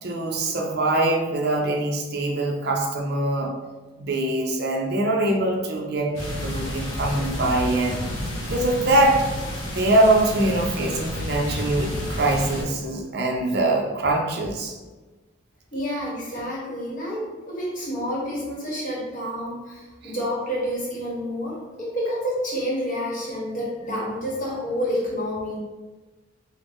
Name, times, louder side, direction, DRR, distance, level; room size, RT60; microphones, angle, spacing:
voice 1, 0.0-3.5 4.0-8.0 8.5-9.2 9.7-14.7, right 1 dB, 50° right, 1 dB, 0.5 m, -23 dB
sound 1, 6.1-12.6, left 1 dB, 80° left, 0.9 m, -30 dB
voice 2, 15.7-25.6, equal, 40° left, -5 dB, 1.0 m, -29 dB
3.7 x 2.0 x 3.5 m, 1.2 s
head